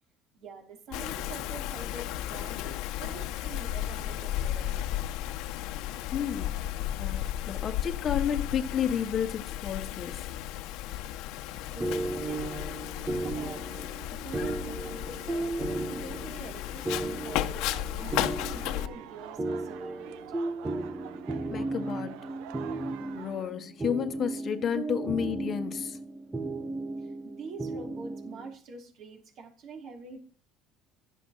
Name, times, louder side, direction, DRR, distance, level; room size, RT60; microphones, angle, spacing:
voice 1, 0.3-4.9 11.7-12.7 13.1-13.8 14.1-18.1 18.5-20.4 27.0-30.2, right 3 dB, 45° right, 5.6 m, -46 dB
Wind, 0.9-18.9, left 13 dB, 65° left, 1.5 m, -34 dB
voice 2, 6.1-10.3 21.5-22.2 23.1-26.0, left 8 dB, 30° left, 1.6 m, -32 dB
sound 1, 11.8-28.5, right 2 dB, 10° right, 1.3 m, -35 dB
sound 2, 18.0-23.5, right 11 dB, 75° right, 1.3 m, -47 dB
16.0 x 13.5 x 5.9 m
cardioid pair, 160°, 0 cm